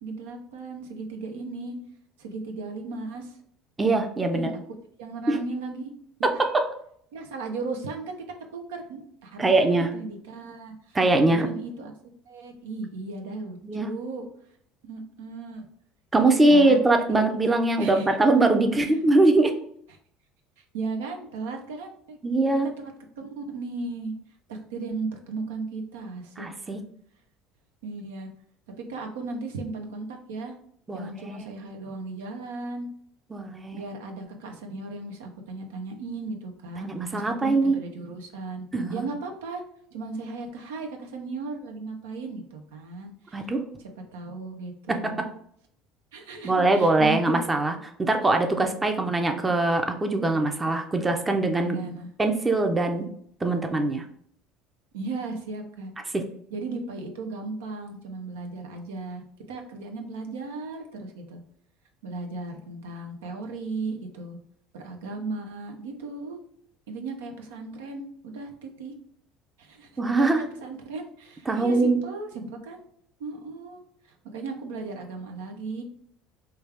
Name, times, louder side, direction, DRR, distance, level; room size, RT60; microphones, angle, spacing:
voice 1, 0.0-1.7 2.2-3.4 4.3-4.5 5.0-5.9 6.3-6.4 7.1-8.2 8.5-11.0 11.3-11.9 12.3-14.2 14.8-15.7 16.2-16.8 17.1-17.3 17.8-18.1 18.8-18.9 20.6-22.2 22.8-22.9 23.2-24.1 24.5-26.8 27.8-28.3 28.9-30.5 30.9-32.9 33.7-39.6 39.9-43.5 44.1-45.2 46.1-47.4 51.6-52.1 54.9-55.9 56.5-59.2 59.5-61.4 62.0-64.4 64.7-66.4 66.9-68.9 69.6-72.8 73.2-73.8 74.3-75.8, right 3 dB, 90° right, 3 dB, 0.6 m, -36 dB
voice 2, 3.8-4.5 5.3-5.4 6.2-6.7 9.4-9.9 10.9-11.5 13.6-13.9 16.1-19.6 22.2-22.7 26.4-26.8 30.9-31.1 33.3-33.8 36.8-37.8 38.7-39.1 43.3-43.7 44.9-45.3 46.4-47.7 48.0-51.8 52.2-53.1 53.4-54.0 56.1-56.3 70.0-70.5 71.5-72.0, right 2 dB, 20° right, 5 dB, 0.5 m, -22 dB
3.3 x 2.4 x 3.2 m, 0.65 s
supercardioid pair, 90°, 0 cm